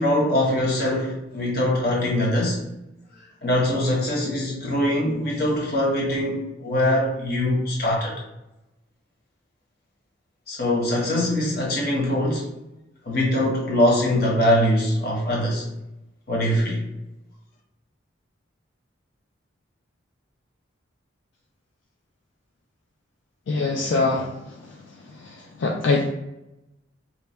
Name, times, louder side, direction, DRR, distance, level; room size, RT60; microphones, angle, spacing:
voice 1, 0.0-2.6 3.4-8.2 10.5-12.5 13.1-15.7 16.3-16.8, left 1 dB, 50° left, -3 dB, 1.0 m, -22 dB
voice 2, 23.5-24.3 25.6-26.1, left 3 dB, 75° left, 0 dB, 0.4 m, -22 dB
3.0 x 2.2 x 4.2 m, 0.91 s
head